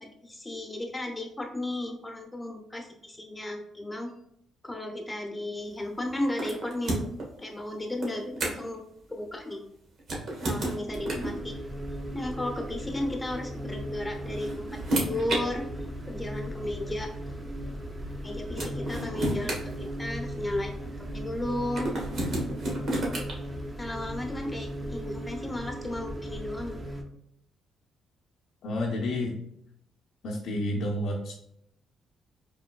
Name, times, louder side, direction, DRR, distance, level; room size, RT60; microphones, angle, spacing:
voice 1, 0.0-4.1 4.6-7.0 7.4-8.8 9.1-9.6 10.4-11.5 12.1-15.7 16.1-17.1 18.2-21.9 23.8-26.8, left 1 dB, 15° left, 3 dB, 0.9 m, -34 dB
sound 1, 6.4-7.3 8.0-8.8 10.0-11.4 12.7-12.8 14.0-15.4 16.4-16.5 18.1-18.2 18.6-20.4 21.7-23.3, right 1 dB, 60° right, 1.3 m, -31 dB
sound 2, 10.9-27.0, equal, 20° right, 0.7 m, -37 dB
voice 2, 28.6-29.4 30.2-31.3, left 1 dB, 75° left, -2 dB, 0.6 m, -30 dB
4.8 x 3.2 x 2.3 m, 0.74 s
cardioid pair, 90°, 0 cm